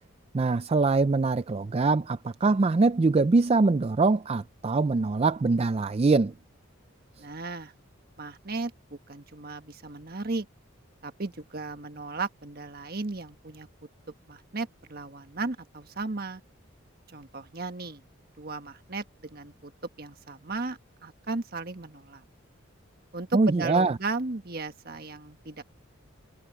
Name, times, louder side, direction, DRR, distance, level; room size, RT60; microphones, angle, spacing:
voice 1, 0.3-6.3 23.3-24.0, right 3 dB, 30° right, 0.4 m, -23 dB
voice 2, 7.2-7.7 8.2-10.5 11.0-13.7 14.3-16.4 17.1-18.0 18.4-19.7 20.0-22.2 23.1-25.6, right 3 dB, 50° right, 1.5 m, -35 dB
head